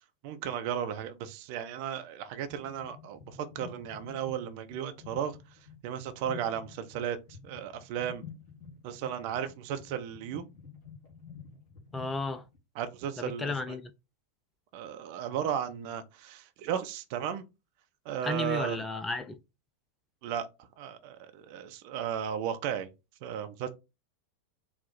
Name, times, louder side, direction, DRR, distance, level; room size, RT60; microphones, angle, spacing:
voice 1, 0.2-5.4 5.8-7.2 7.4-8.2 8.8-10.4 12.7-13.8 14.7-17.4 18.0-18.8 20.2-20.5 20.8-22.9 23.2-23.7, right 9 dB, 45° right, 0.6 m, -35 dB
sound 1, 2.4-12.6, left 6 dB, 40° left, 2.3 m, -50 dB
voice 2, 11.9-12.4 13.2-13.8 18.2-19.4, left 2 dB, 10° left, 0.4 m, -33 dB
4.5 x 2.0 x 3.9 m
figure-of-eight pair, 90°, 0 cm